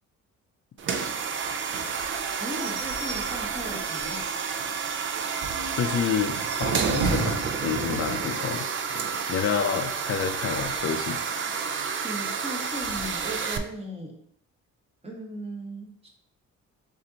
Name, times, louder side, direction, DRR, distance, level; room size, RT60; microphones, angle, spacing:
sound 1, 0.8-13.6, right 6 dB, 40° right, 0.4 m, -30 dB
Slam / Squeak / Wood, 1.7-4.9 5.2-5.3 5.6-5.7 6.2-7.6, right 3 dB, 80° right, 1.0 m, -35 dB
voice 1, 2.4-4.2 12.0-14.1 15.0-16.1, equal, 20° right, 0 dB, 1.2 m, -37 dB
voice 2, 5.7-8.7 9.3-11.2, left 7 dB, 45° left, 4 dB, 0.5 m, -28 dB
4.3 x 2.7 x 3.9 m, 0.66 s
cardioid pair, 90°, 30 cm